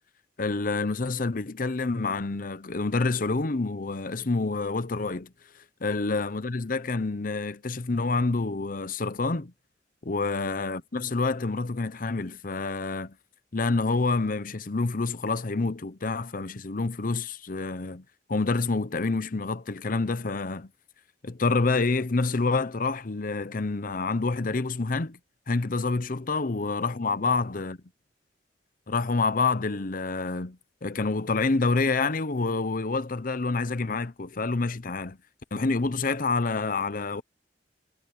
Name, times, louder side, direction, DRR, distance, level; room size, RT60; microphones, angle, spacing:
voice 1, 0.4-5.3 5.8-9.5 10.0-13.1 13.5-20.7 21.2-25.2 25.5-27.8 28.9-35.2 35.5-37.2, left 3 dB, 50° left, 0.8 m, -27 dB
head